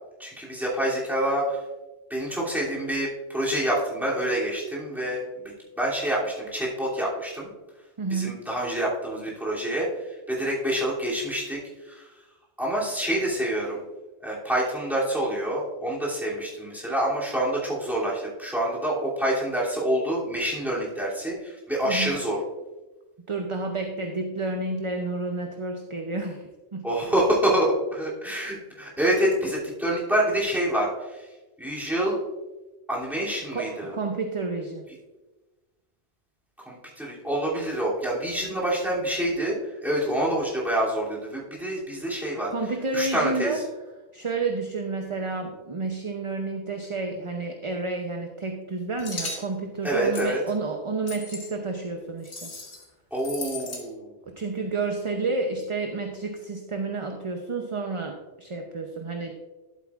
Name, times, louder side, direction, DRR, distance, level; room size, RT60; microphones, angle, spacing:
voice 1, 0.2-1.6 2.1-7.5 8.1-11.6 11.8-12.1 12.6-13.8 14.2-22.4 26.8-31.3 31.6-32.2 32.9-33.9 36.6-42.5 42.9-43.6 49.8-50.4 53.1-54.1, right 1 dB, ahead, -6 dB, 2.7 m, -27 dB
voice 2, 8.0-8.5 21.9-22.2 23.3-26.9 33.5-34.9 42.5-43.6 44.1-52.5 54.2-59.4, right 3 dB, 35° right, 3 dB, 0.6 m, -30 dB
sound 1, 49.0-49.5 50.2-50.4 51.1-51.5 52.2-52.8 53.2-53.8, left 3 dB, 70° left, 1.8 m, -36 dB
11.5 x 8.3 x 2.4 m, 1.1 s
omnidirectional pair, 1.2 m